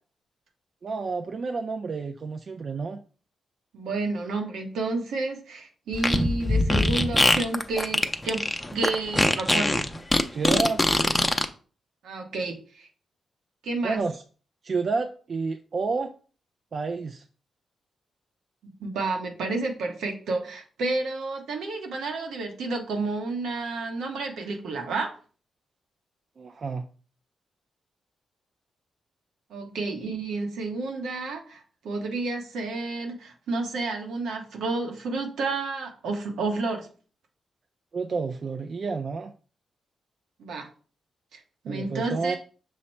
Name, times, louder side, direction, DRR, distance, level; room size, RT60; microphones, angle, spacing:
voice 1, 0.8-3.0 10.3-10.9 13.8-14.2 14.6-16.1 16.7-17.2 26.4-26.9 37.9-39.3 41.7-42.4, right 4 dB, 55° right, 5 dB, 0.3 m, -30 dB
voice 2, 3.7-8.4 8.7-9.8 12.0-12.9 13.6-14.0 18.8-25.1 29.5-36.9 40.4-40.7 41.3-41.4 41.6-42.4, right 3 dB, 85° right, 3 dB, 0.9 m, -30 dB
Fart, 5.9-11.5, left 1 dB, 15° left, 0.5 m, -22 dB
5.7 x 2.1 x 4.3 m, 0.40 s
cardioid pair, 60°, 0 cm